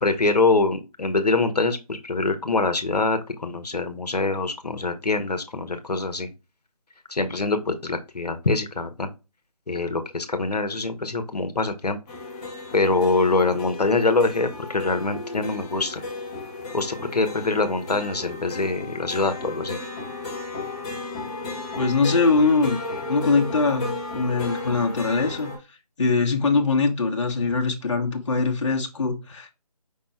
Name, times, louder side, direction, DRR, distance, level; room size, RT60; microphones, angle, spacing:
voice 1, 0.0-6.3 7.1-9.1 9.7-12.0 12.7-16.0 16.7-19.8, left 3 dB, 85° left, 0.9 m, -24 dB
sound 1, 12.1-25.6, left 2 dB, 10° left, 0.6 m, -34 dB
voice 2, 21.8-22.8 23.0-25.5 26.0-29.5, left 4 dB, 50° left, 0.9 m, -22 dB
5.2 x 2.2 x 4.4 m
figure-of-eight pair, 160°, 20 cm